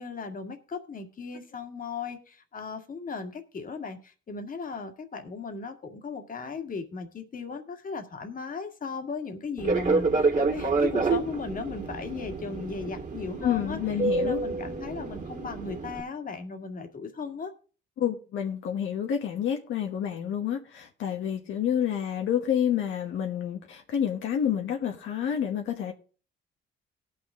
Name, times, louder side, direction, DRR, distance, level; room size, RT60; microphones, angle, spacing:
voice 1, 0.0-17.5, left 4 dB, 45° left, 1.8 m, -37 dB
Fixed-wing aircraft airplane, 9.6-16.0, right 3 dB, 40° right, 1.8 m, -28 dB
voice 2, 13.4-14.4 18.0-25.9, left 9 dB, 80° left, 1.2 m, -29 dB
18.5 x 6.2 x 3.6 m
cardioid pair, 90°, 20 cm